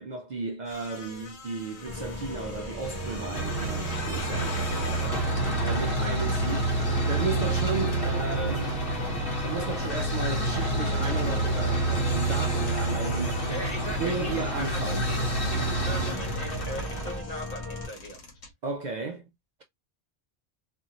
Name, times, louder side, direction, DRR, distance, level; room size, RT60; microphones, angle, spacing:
voice 1, 0.0-8.8 9.4-15.0 18.6-19.3, right 3 dB, 55° right, 0.5 m, -34 dB
sound 1, 0.7-8.8 9.0-18.5, left 3 dB, 90° left, 1.1 m, -45 dB
sound 2, 1.9-17.9, left 2 dB, 15° left, 1.0 m, -38 dB
sound 3, 2.8-17.2, right 2 dB, 60° left, 1.1 m, -28 dB
voice 2, 13.5-18.2, equal, 40° left, 0.8 m, -39 dB
2.5 x 2.5 x 2.7 m
omnidirectional pair, 1.1 m